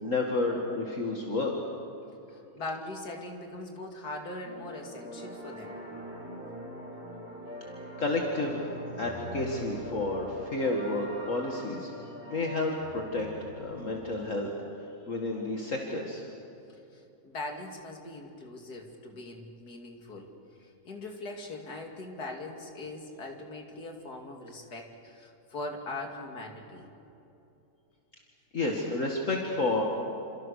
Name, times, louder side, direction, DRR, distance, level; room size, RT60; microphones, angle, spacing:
voice 1, 0.0-1.5 8.0-8.7 9.0-11.9 12.3-13.3 13.6-14.5 15.1-16.2 28.5-29.8, left 2 dB, 50° left, 0 dB, 2.4 m, -30 dB
voice 2, 2.6-5.8 16.9-20.3 20.8-26.9, left 2 dB, 75° left, 2 dB, 3.0 m, -41 dB
sound 1, 4.4-14.0, equal, 10° right, 5.4 m, -43 dB
28.5 x 27.0 x 6.6 m, 2.9 s
omnidirectional pair, 1.7 m